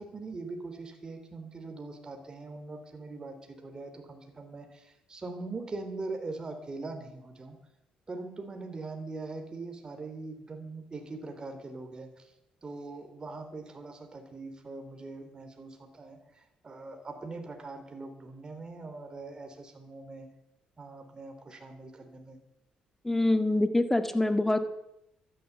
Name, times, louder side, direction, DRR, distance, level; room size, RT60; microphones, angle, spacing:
voice 1, 0.0-7.6 8.1-12.3 12.6-20.3 20.8-22.4, right 3 dB, 30° right, 6 dB, 3.0 m, -42 dB
voice 2, 23.0-24.6, left 2 dB, 10° left, 9 dB, 1.7 m, -25 dB
13.0 x 10.0 x 8.1 m, 0.85 s
cardioid pair, 90°, 3 cm